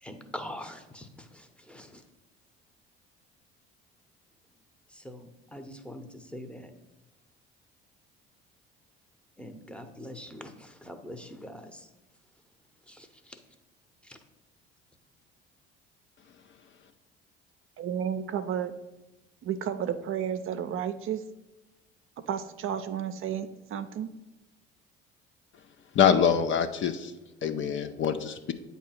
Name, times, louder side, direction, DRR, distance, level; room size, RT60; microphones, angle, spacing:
voice 1, 0.0-2.0 4.9-6.7 9.4-11.9 12.9-13.4 14.0-14.2, left 1 dB, 5° left, 7 dB, 0.8 m, -44 dB
voice 2, 17.8-18.7 19.4-21.2 22.3-24.1, right 8 dB, 45° right, 9 dB, 0.5 m, -32 dB
voice 3, 26.0-27.1 27.4-28.5, left 7 dB, 40° left, 9 dB, 0.5 m, -24 dB
8.4 x 2.8 x 5.7 m, 1.0 s
hypercardioid pair, 60°, 29 cm